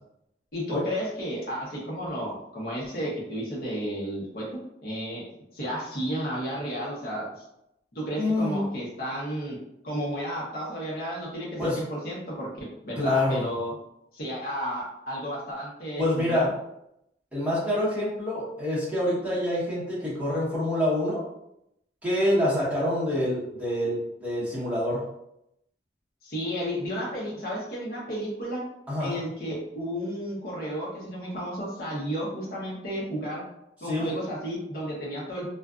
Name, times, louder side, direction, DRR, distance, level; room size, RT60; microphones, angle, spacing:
voice 1, 0.5-4.5 4.8-5.2 5.5-7.4 7.9-9.6 9.8-13.7 14.1-16.5 26.2-28.6 29.0-33.4 33.8-35.5, equal, 55° left, -4 dB, 0.8 m, -32 dB
voice 2, 8.2-8.7 11.6-11.8 13.0-13.5 16.0-16.5 17.3-21.2 22.0-25.0 28.9-29.2 33.8-34.1, left 1 dB, 10° right, -9 dB, 0.9 m, -26 dB
2.5 x 2.3 x 2.3 m, 0.81 s
head